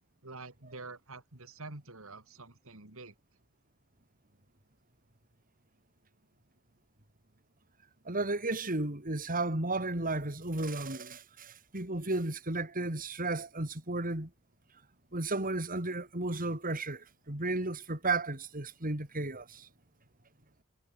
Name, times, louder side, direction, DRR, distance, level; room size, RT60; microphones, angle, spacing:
voice 1, 0.2-3.2, right 3 dB, 65° right, 3.4 m, -47 dB
voice 2, 8.1-14.3 15.1-19.7, right 2 dB, 40° right, 3.8 m, -34 dB
head